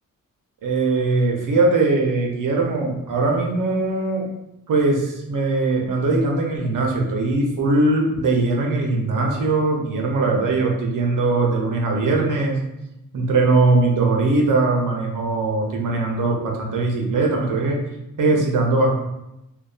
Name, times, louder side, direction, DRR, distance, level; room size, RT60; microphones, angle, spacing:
voice 1, 0.6-4.3 4.7-12.6 13.1-17.8 18.2-18.9, right 3 dB, 70° right, 0 dB, 0.7 m, -20 dB
2.6 x 2.2 x 2.3 m, 0.89 s
cardioid pair, 85°, 33 cm